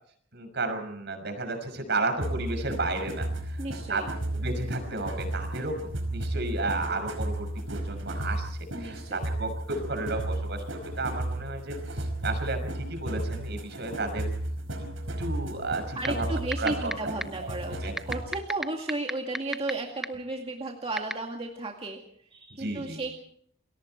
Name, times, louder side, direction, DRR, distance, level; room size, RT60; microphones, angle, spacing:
voice 1, 0.3-3.6 3.9-4.0 4.3-14.3 14.8-14.9 15.2-16.9 17.4-17.5 17.8-17.9 22.5-23.0, right 2 dB, 60° right, 7 dB, 6.0 m, -33 dB
sound 1, 2.2-18.4, right 1 dB, 75° right, 5.2 m, -34 dB
voice 2, 3.6-4.1 8.7-9.3 16.0-23.1, right 2 dB, 30° right, 1 dB, 2.2 m, -34 dB
sound 2, 16.0-16.1 16.5-16.9 17.2-17.3 18.0-19.7 20.0-20.1 21.0-21.1, equal, ahead, 0.8 m, -27 dB
29.0 x 22.0 x 4.5 m, 0.63 s
head